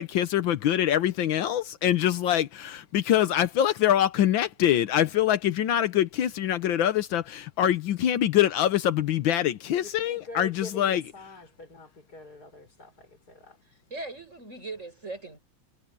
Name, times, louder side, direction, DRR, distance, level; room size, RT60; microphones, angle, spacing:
voice 1, 0.0-2.6 3.1-11.0, left 11 dB, 80° left, 1.6 m, -24 dB
voice 2, 9.8-13.6, left 3 dB, 50° left, 6.1 m, -45 dB
voice 3, 13.9-15.4, right 2 dB, 35° right, 6.9 m, -39 dB
omnidirectional pair, 2.1 m